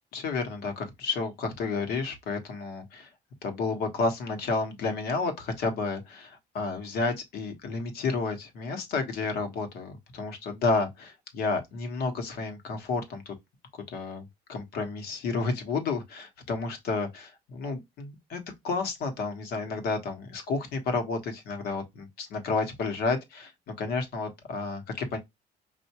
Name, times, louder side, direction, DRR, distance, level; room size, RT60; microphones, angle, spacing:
voice 1, 0.1-3.1 3.4-13.3 13.9-25.2, left 4 dB, 65° left, 1.3 m, -31 dB
5.5 x 2.7 x 2.9 m
cardioid pair, 160°, 17 cm